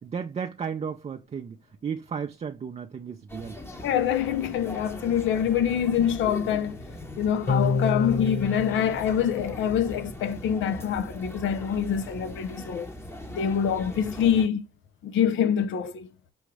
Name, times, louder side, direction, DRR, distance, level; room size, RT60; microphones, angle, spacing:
voice 1, 0.0-1.6 1.8-3.6, right 6 dB, 35° right, 0.5 m, -34 dB
sound 1, 3.3-14.5, left 1 dB, 10° left, 0.9 m, -40 dB
voice 2, 3.8-6.8 7.2-12.9 13.3-14.6 15.0-16.1, left 8 dB, 75° left, 0.7 m, -25 dB
sound 2, 7.5-10.1, left 4 dB, 50° left, 1.8 m, -29 dB
6.2 x 2.3 x 3.1 m
cardioid pair, 90°, 20 cm